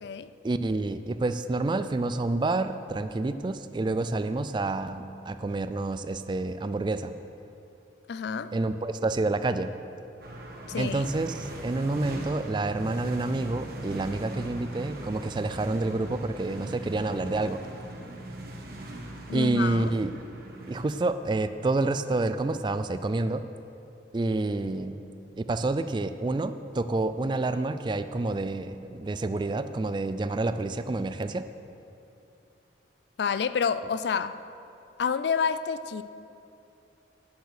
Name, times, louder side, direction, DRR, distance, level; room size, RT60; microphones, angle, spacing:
voice 1, 0.4-7.1 8.5-9.7 10.8-17.6 19.3-20.1 20.7-23.4 24.1-25.0 25.4-31.5, right 2 dB, 25° right, 11 dB, 0.3 m, -28 dB
voice 2, 8.1-8.6 10.7-11.1 19.3-19.9 33.2-34.4 35.0-36.0, left 6 dB, 65° left, 14 dB, 0.3 m, -28 dB
sound 1, 10.2-20.8, right 1 dB, 55° right, 1.3 m, -40 dB
9.5 x 8.0 x 6.4 m, 2.7 s
head